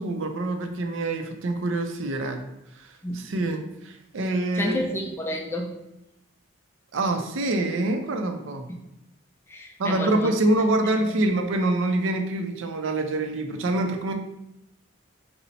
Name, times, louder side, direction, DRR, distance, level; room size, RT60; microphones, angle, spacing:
voice 1, 0.0-2.4 2.7-4.8 6.9-8.7 9.8-14.1, right 2 dB, 65° right, 5 dB, 0.4 m, -25 dB
voice 2, 4.5-5.8 9.5-10.3, equal, 10° left, 2 dB, 0.3 m, -30 dB
4.0 x 2.0 x 4.0 m, 0.89 s
head